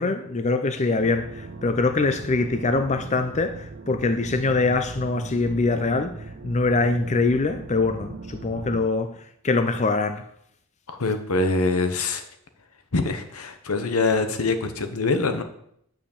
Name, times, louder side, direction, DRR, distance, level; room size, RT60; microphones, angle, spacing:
voice 1, 0.0-10.3, left 3 dB, 30° left, 0.5 m, -24 dB
sound 1, 1.0-8.9, right 3 dB, 45° right, 0.5 m, -39 dB
voice 2, 10.9-12.2 12.9-15.4, left 3 dB, 80° left, 1.0 m, -24 dB
9.1 x 4.9 x 7.2 m
head